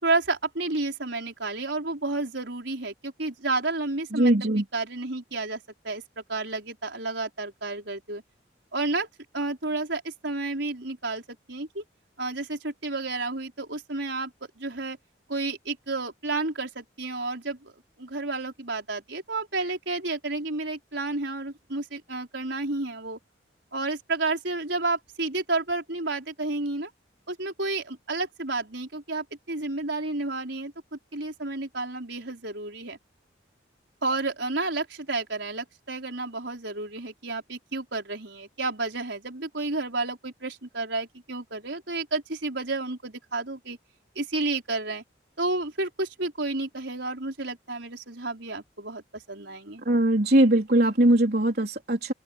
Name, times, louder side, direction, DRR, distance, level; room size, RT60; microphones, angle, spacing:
voice 1, 0.0-6.0 6.3-8.2 8.7-9.1 9.3-11.2 11.5-11.8 12.2-15.0 15.3-17.7 18.0-23.2 23.7-26.9 27.3-33.0 34.0-43.8 44.1-45.0 45.4-49.8, right 2 dB, 70° right, 4.8 m, -31 dB
voice 2, 4.1-4.6 49.9-52.1, right 1 dB, 55° right, 3.9 m, -21 dB
open air
head